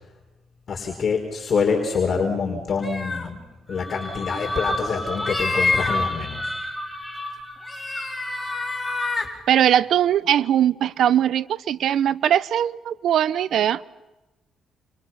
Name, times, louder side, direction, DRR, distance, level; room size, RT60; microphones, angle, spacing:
voice 1, 0.7-6.6, left 5 dB, 50° left, 4.8 m, -26 dB
sound 1, 2.7-3.3 5.1-6.0 7.7-9.3, left 3 dB, 20° left, 5.2 m, -27 dB
sound 2, 3.7-9.4, left 1 dB, 5° right, 6.3 m, -31 dB
voice 2, 9.5-13.8, right 10 dB, 70° right, 0.9 m, -20 dB
29.5 x 29.0 x 5.9 m
cardioid pair, 90°, 0 cm